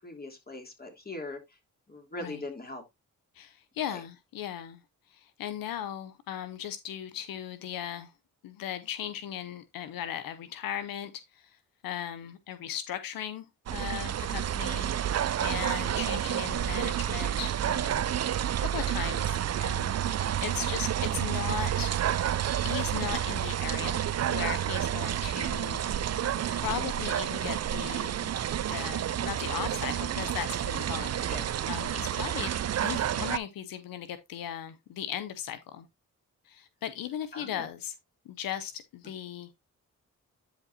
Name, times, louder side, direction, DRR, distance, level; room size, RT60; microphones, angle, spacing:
voice 1, 0.0-1.4 1.9-2.8 3.9-4.0 31.3-31.5 37.3-37.7, left 2 dB, 25° left, 3.1 m, -40 dB
voice 2, 3.3-4.8 5.1-8.1 8.4-11.6 11.8-14.9 15.4-18.0 18.6-19.9 20.4-21.9 22.6-24.0 24.3-25.8 26.1-28.3 28.7-32.5 32.8-35.9 36.5-37.9 38.3-39.5, left 10 dB, 90° left, 0.7 m, -37 dB
sound 1, 13.7-33.4, right 10 dB, 50° right, 0.5 m, -30 dB
10.5 x 5.2 x 2.7 m
cardioid pair, 55°, 34 cm